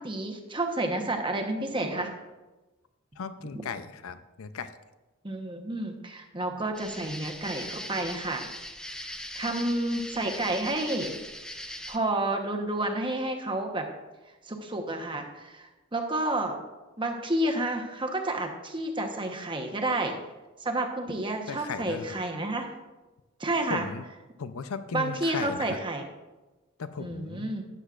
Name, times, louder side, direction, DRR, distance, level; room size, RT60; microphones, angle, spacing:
voice 1, 0.0-2.1 5.2-8.5 9.4-11.1 11.9-13.9 14.5-16.6 17.0-20.2 20.6-22.7 23.4-23.9 24.9-26.0 27.0-27.6, right 1 dB, 25° right, 3 dB, 1.0 m, -30 dB
voice 2, 3.2-4.8 21.1-21.2 21.5-22.2 23.7-24.1 24.4-25.8 26.8-27.5, left 5 dB, 80° left, 12 dB, 0.6 m, -36 dB
sound 1, 6.7-12.0, left 1 dB, 5° left, 0.4 m, -40 dB
12.5 x 9.8 x 2.5 m, 1.1 s
head